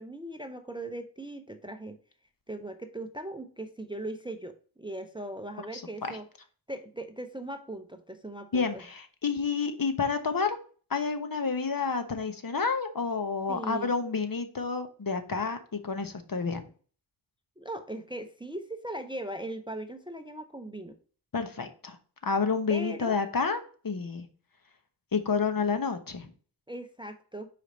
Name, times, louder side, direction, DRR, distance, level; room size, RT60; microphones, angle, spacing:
voice 1, 0.0-2.0 2.5-6.3 6.7-8.7 13.5-13.9 17.6-21.0 22.7-23.2 26.7-27.5, right 1 dB, 10° right, 8 dB, 0.6 m, -39 dB
voice 2, 5.7-6.2 8.5-10.6 10.9-16.7 21.3-22.0 22.2-24.3 25.1-26.3, left 5 dB, 45° left, 8 dB, 1.1 m, -29 dB
5.2 x 4.8 x 4.0 m, 0.41 s
cardioid pair, 55°, 48 cm